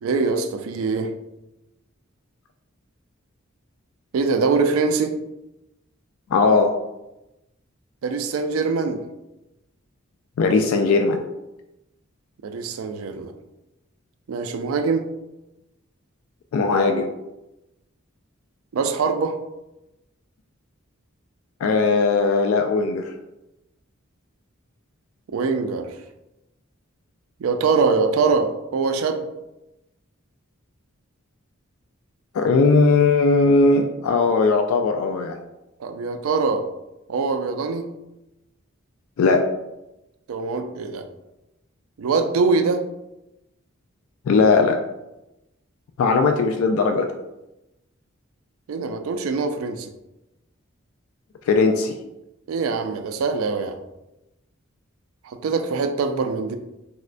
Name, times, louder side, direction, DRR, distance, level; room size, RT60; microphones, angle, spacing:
voice 1, 0.0-1.1 4.1-5.1 8.0-9.0 12.4-13.3 14.3-15.0 18.7-19.4 25.3-25.9 27.4-29.3 35.8-36.6 37.1-37.8 40.3-41.0 42.0-42.8 48.7-49.9 52.5-53.8 55.2-56.6, right 4 dB, 80° right, 7 dB, 0.4 m, -23 dB
voice 2, 6.3-6.7 10.4-11.2 16.5-17.1 21.6-23.1 32.3-35.4 39.2-39.4 44.3-44.8 46.0-47.1 51.5-51.9, left 4 dB, 80° left, 5 dB, 0.3 m, -18 dB
4.2 x 2.1 x 2.4 m, 0.94 s
head